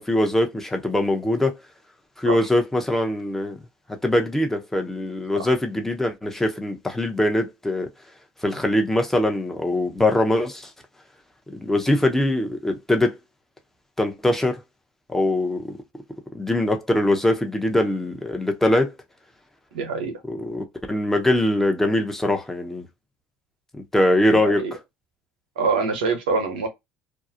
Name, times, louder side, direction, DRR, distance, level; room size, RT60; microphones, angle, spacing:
voice 1, 0.0-1.5 2.2-3.6 3.9-7.9 8.4-10.7 11.5-13.1 14.0-14.6 15.1-15.8 16.3-18.9 20.3-22.8 23.7-24.7, left 1 dB, 5° left, 0.7 m, -22 dB
voice 2, 19.7-20.1 24.3-24.7 25.6-26.7, right 4 dB, 85° right, 0.7 m, -25 dB
2.3 x 2.0 x 2.7 m
hypercardioid pair, 70°, 5 cm